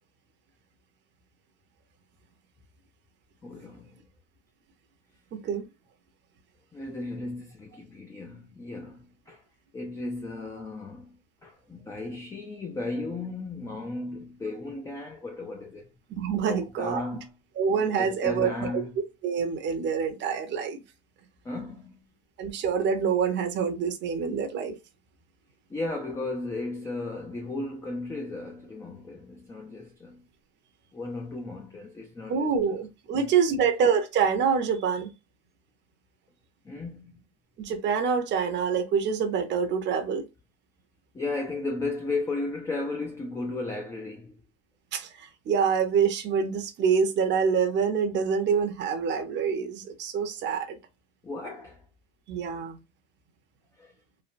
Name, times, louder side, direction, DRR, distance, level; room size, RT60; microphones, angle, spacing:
voice 1, 3.4-4.0 6.7-9.4 9.7-15.9 16.5-17.3 18.0-18.9 21.4-22.0 25.7-30.3 30.9-32.5 33.1-33.7 36.6-37.3 41.1-44.4 51.2-51.8 53.8-53.9, left 2 dB, 10° left, 0.3 m, -35 dB
voice 2, 5.3-5.6 16.1-17.0 17.6-18.8 19.2-20.8 22.4-24.7 32.3-35.1 37.6-40.3 44.9-50.8 52.3-52.8, right 6 dB, 35° right, 0.7 m, -26 dB
3.2 x 2.1 x 2.5 m
supercardioid pair, 130°, 33 cm